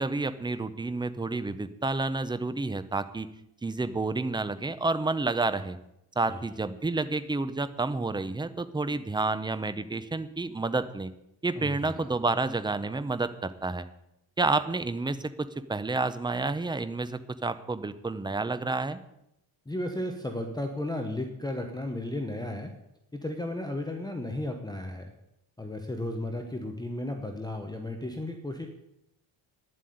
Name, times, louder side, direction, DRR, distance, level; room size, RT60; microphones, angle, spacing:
voice 1, 0.0-3.3 3.6-5.8 6.2-11.1 11.4-13.9 14.4-19.0, right 3 dB, 10° right, 12 dB, 0.6 m, -30 dB
voice 2, 11.6-12.1 19.7-22.7 23.1-25.1 25.6-28.7, left 1 dB, 10° left, 4 dB, 0.9 m, -34 dB
10.5 x 7.7 x 9.3 m, 0.83 s
cardioid pair, 145°, 47 cm